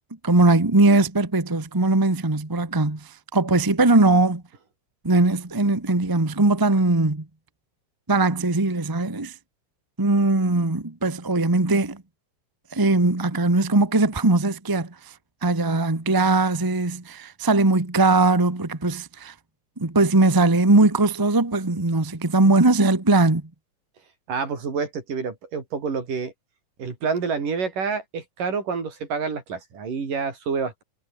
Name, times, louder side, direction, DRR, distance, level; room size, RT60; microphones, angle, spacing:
voice 1, 0.2-4.4 5.0-7.3 8.1-9.3 10.0-12.0 12.7-14.9 15.4-19.3 19.8-23.5, right 2 dB, 20° right, 0.5 m, -20 dB
voice 2, 24.3-26.3 26.8-30.8, right 5 dB, 70° right, 6.4 m, -28 dB
omnidirectional pair, 3.9 m